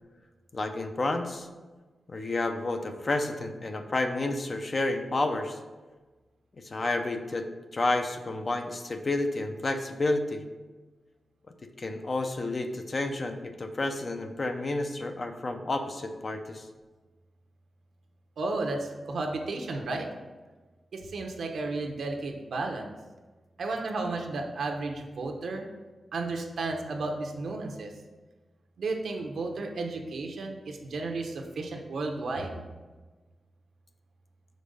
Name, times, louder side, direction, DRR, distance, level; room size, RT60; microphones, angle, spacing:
voice 1, 0.5-1.5 2.1-5.6 6.6-7.5 7.7-10.4 11.8-16.7, left 2 dB, 35° left, 6 dB, 0.5 m, -30 dB
voice 2, 18.4-20.1 20.9-23.0 23.6-25.7 26.1-27.9 28.8-32.6, right 3 dB, 75° right, 2 dB, 0.9 m, -33 dB
5.2 x 4.4 x 5.3 m, 1.3 s
wide cardioid pair, 155°, 0 cm